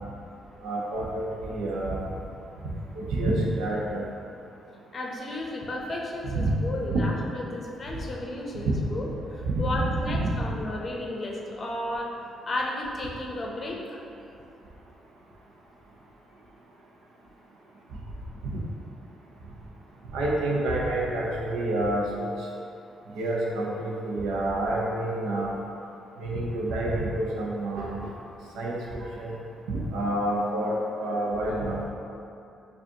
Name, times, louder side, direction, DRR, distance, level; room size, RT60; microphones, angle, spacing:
voice 1, 0.6-2.1 2.9-4.0 6.3-6.6 6.9-7.0 8.7-8.8 9.4-10.4 18.4-18.6 20.1-22.3 23.1-25.6 26.2-28.1 28.5-29.4 29.7-31.9, right 1 dB, 90° right, -3 dB, 0.6 m, -28 dB
voice 2, 4.9-12.1 12.5-14.0, left 1 dB, 40° left, -1 dB, 0.6 m, -33 dB
4.9 x 2.4 x 2.8 m, 2.7 s
cardioid pair, 90°, 0 cm